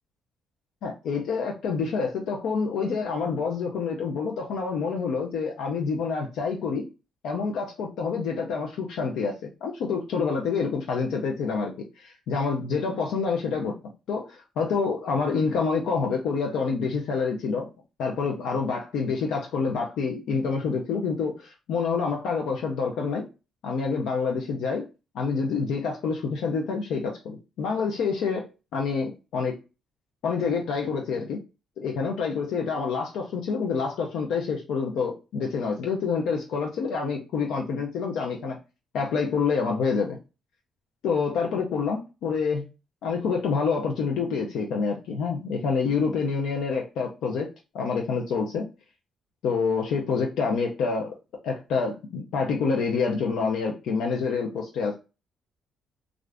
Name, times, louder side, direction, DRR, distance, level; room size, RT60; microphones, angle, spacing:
voice 1, 0.8-6.9 7.2-13.8 14.1-17.7 18.0-23.2 23.6-24.8 25.1-29.5 30.2-31.4 31.8-38.6 38.9-40.2 41.0-42.7 43.0-47.5 47.7-48.7 49.4-51.1 51.4-55.0, left 5 dB, 80° left, 0.5 m, -27 dB
2.5 x 2.4 x 3.2 m
cardioid pair, 90°, 0 cm